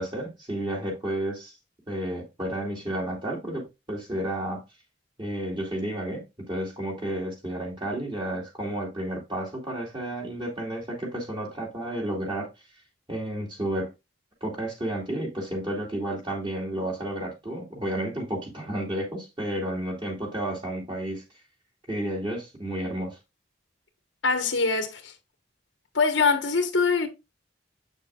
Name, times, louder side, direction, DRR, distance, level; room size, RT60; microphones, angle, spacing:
voice 1, 0.0-1.5 1.9-4.6 5.2-12.5 13.1-13.9 14.4-21.2 21.9-23.2, right 1 dB, 25° right, 2.3 m, -31 dB
voice 2, 24.2-25.1 25.9-27.1, left 4 dB, 90° left, 1.3 m, -23 dB
7.6 x 6.6 x 2.4 m
head